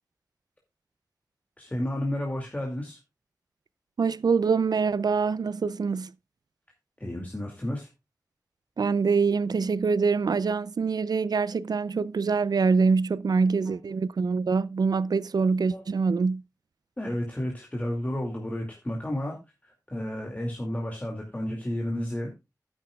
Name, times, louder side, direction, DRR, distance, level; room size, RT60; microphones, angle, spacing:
voice 1, 1.6-3.0 7.0-7.9 13.7-13.8 15.7-15.8 17.0-22.3, left 1 dB, 25° left, 2.4 m, -32 dB
voice 2, 4.0-6.1 8.8-16.4, right 5 dB, 85° right, 0.5 m, -25 dB
12.5 x 10.5 x 2.4 m
wide cardioid pair, 75°, 7 cm